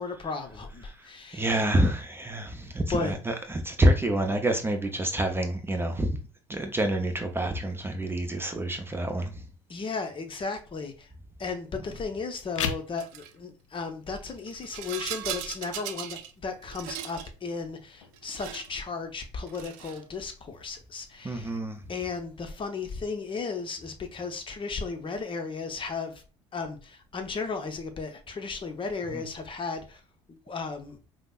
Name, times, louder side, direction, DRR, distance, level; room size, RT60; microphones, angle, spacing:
voice 1, 0.0-1.6 2.9-3.1 9.7-11.1 11.4-21.5 21.9-26.2 26.5-30.0 30.3-31.0, left 4 dB, 35° left, 0.8 m, -35 dB
voice 2, 1.3-3.1 3.5-6.1 6.5-9.3 21.2-21.8, right 1 dB, 15° right, 0.6 m, -27 dB
sound 1, 12.4-23.4, left 7 dB, 85° left, 0.4 m, -43 dB
Rattle, 13.0-13.3 14.4-16.3 16.6-17.3 18.1-18.8 19.4-20.1, right 11 dB, 65° right, 0.5 m, -38 dB
5.0 x 2.1 x 2.4 m
hypercardioid pair, 65°, 16 cm